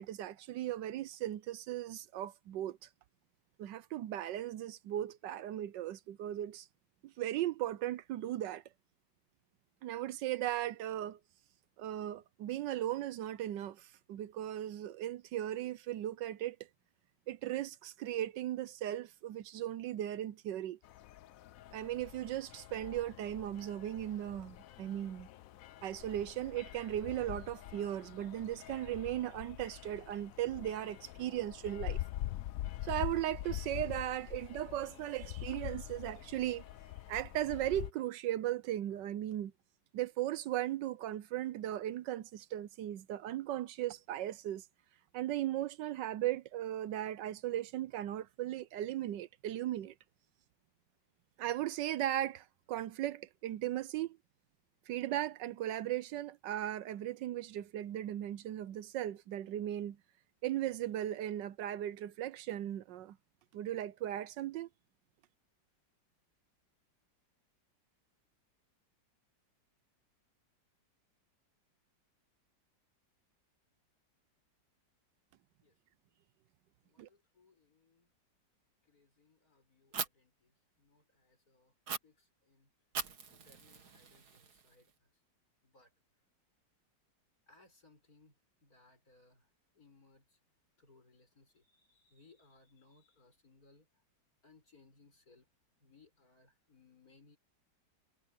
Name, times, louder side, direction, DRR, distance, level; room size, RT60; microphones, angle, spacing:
voice 1, 0.0-2.8 3.6-6.7 7.0-8.6 9.8-11.2 11.8-16.6 17.3-20.8 21.7-25.3 25.8-32.0 32.8-36.6 37.1-39.5 39.9-44.6 45.1-49.9 51.4-54.2 54.9-60.0 60.4-63.2 63.5-64.7 77.0-77.1, right 12 dB, 80° right, 1.3 m, -37 dB
sound 1, 20.8-37.9, left 14 dB, 75° left, 0.8 m, -45 dB
voice 2, 76.8-78.1 78.8-81.7 82.0-82.7 83.3-85.1 85.6-85.9 87.5-89.5 89.7-90.4 90.8-93.9 94.4-95.5 95.8-97.4, left 3 dB, 50° left, 6.9 m, -66 dB
Fire, 79.9-80.1 81.9-82.0 82.9-84.9, right 6 dB, 60° right, 2.2 m, -41 dB
omnidirectional pair, 2.0 m